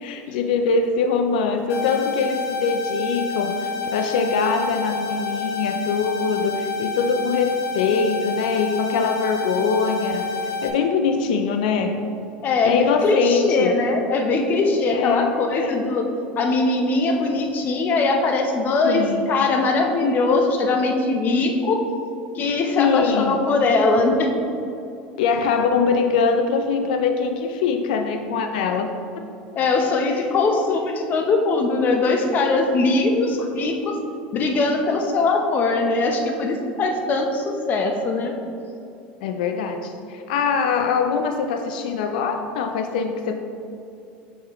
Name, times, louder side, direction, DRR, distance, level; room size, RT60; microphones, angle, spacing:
voice 1, 0.0-12.0 12.6-13.8 14.9-15.7 18.8-19.3 22.8-23.3 25.2-29.2 30.0-30.1 39.2-43.3, left 5 dB, 85° left, 6 dB, 0.4 m, -23 dB
sound 1, 1.7-10.7, left 4 dB, 65° left, 1.2 m, -28 dB
voice 2, 12.4-16.1 16.4-21.8 22.3-24.3 29.6-34.0 34.3-38.3, left 3 dB, 40° left, 3 dB, 0.8 m, -21 dB
6.4 x 6.0 x 3.0 m, 2.6 s
supercardioid pair, 115°, 5 cm